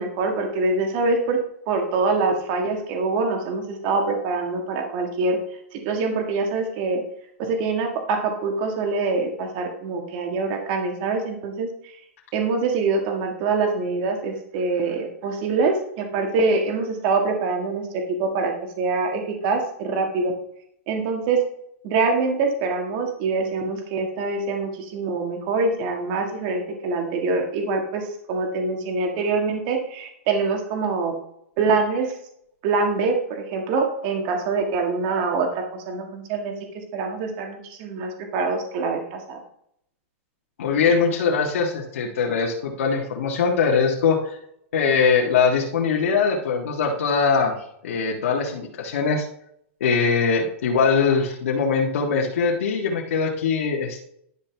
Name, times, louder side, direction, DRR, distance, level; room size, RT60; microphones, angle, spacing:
voice 1, 0.0-1.4 1.7-5.4 5.7-7.0 7.4-11.9 12.3-20.3 20.9-21.4 21.8-31.1 31.6-32.2 32.6-36.5 36.9-39.4, right 3 dB, 45° right, 2 dB, 1.7 m, -24 dB
voice 2, 40.6-44.4 44.7-47.5 47.8-49.2 49.8-54.0, left 5 dB, 85° left, -2 dB, 1.6 m, -22 dB
11.5 x 5.9 x 3.4 m, 0.70 s
supercardioid pair, 160°, 7 cm